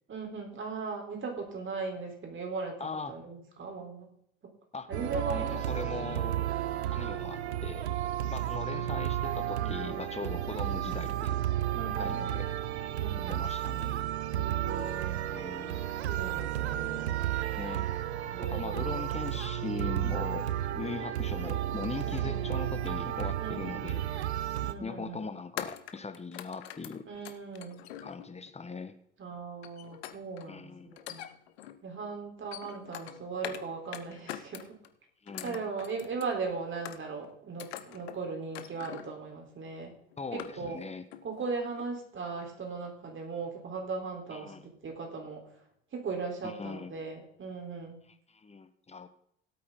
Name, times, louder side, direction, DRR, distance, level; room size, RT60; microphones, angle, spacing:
voice 1, 0.1-4.1 4.9-5.8 8.7-8.8 9.6-10.0 11.7-12.3 13.0-13.4 14.3-15.3 16.1-17.1 18.3-19.0 22.0-22.4 23.4-23.9 24.6-25.2 27.1-27.8 29.2-31.3 31.8-34.8 35.4-39.9 40.3-40.8 41.2-44.5 44.8-45.4 45.9-48.0, right 4 dB, 40° right, 2 dB, 4.0 m, -38 dB
voice 2, 2.8-3.1 4.7-4.9 5.3-6.5 6.9-7.9 8.3-11.4 11.7-12.5 13.3-14.1 15.3-15.9 17.6-17.9 18.4-20.4 20.7-24.1 24.8-27.0 28.0-29.0 30.5-31.0 35.2-35.6 40.2-41.0 44.3-44.7 46.4-46.9 48.3-49.1, left 4 dB, 20° left, 9 dB, 1.4 m, -40 dB
sound 1, 4.9-24.7, right 12 dB, 85° right, 0.7 m, -32 dB
sound 2, 24.1-24.4 25.6-28.5 29.6-30.5 30.9-31.8 32.3-33.7 33.9-34.9 35.3-36.4 36.9-37.3 37.6-38.2 38.5-39.2 39.7-39.8 40.1-40.9 41.1-41.4 41.8-41.9, left 12 dB, 75° left, 1.0 m, -44 dB
17.0 x 8.5 x 3.9 m, 0.69 s
hypercardioid pair, 65°, 32 cm